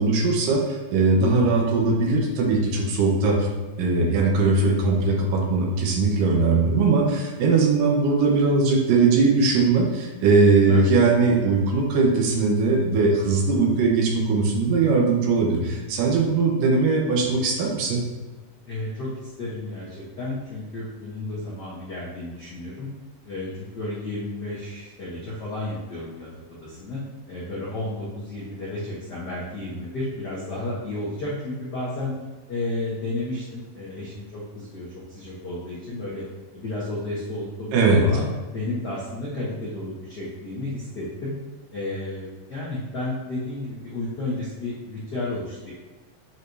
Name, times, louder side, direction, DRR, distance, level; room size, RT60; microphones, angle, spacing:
voice 1, 0.0-3.5 3.8-18.0 37.7-38.0, right 3 dB, 85° right, 0 dB, 2.6 m, -20 dB
voice 2, 18.7-22.9 23.2-27.0 27.3-32.1 32.5-36.2 36.5-41.3 41.7-45.7, left 2 dB, 80° left, -8 dB, 0.9 m, -32 dB
7.9 x 4.6 x 2.7 m, 1.3 s
omnidirectional pair, 3.8 m